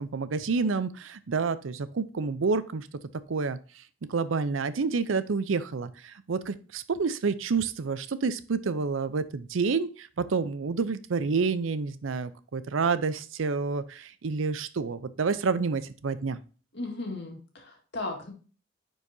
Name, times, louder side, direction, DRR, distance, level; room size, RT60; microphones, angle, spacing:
voice 1, 0.0-2.9 3.3-3.6 4.1-16.4, right 4 dB, 85° right, 14 dB, 0.6 m, -29 dB
voice 2, 16.7-18.3, left 2 dB, 60° left, 1 dB, 2.1 m, -36 dB
9.9 x 4.6 x 2.7 m, 0.38 s
head